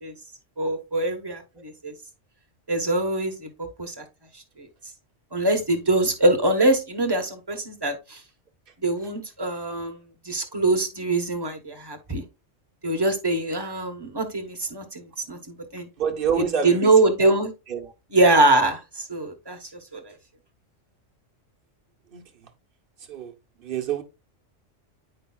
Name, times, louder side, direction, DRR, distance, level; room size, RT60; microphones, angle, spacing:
voice 1, 0.6-1.9 2.7-4.0 4.3-4.7 5.3-8.2 8.8-12.2 12.8-15.9 16.4-17.5 18.1-20.1, right 2 dB, 20° right, 1.1 m, -23 dB
voice 2, 16.0-16.9 17.7-17.9 22.1-22.5 23.1-23.3 23.6-24.0, right 7 dB, 50° right, 1.0 m, -27 dB
8.8 x 5.1 x 2.3 m
omnidirectional pair, 1.3 m